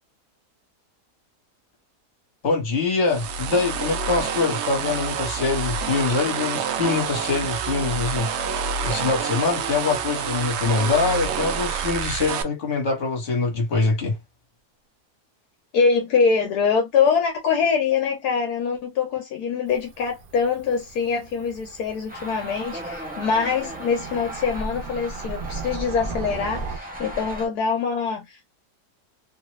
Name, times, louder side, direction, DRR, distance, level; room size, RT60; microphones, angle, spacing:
voice 1, 2.4-8.3 8.8-14.1, left 4 dB, 45° left, 1.4 m, -24 dB
sound 1, 3.1-12.4, right 6 dB, 90° right, 0.6 m, -27 dB
voice 2, 15.7-28.5, left 5 dB, 75° left, 1.2 m, -24 dB
Cricket / Motor vehicle (road), 19.7-26.8, right 7 dB, 70° right, 1.1 m, -39 dB
sound 2, 22.1-27.5, right 1 dB, 15° right, 0.4 m, -35 dB
3.0 x 2.3 x 3.0 m
omnidirectional pair, 1.7 m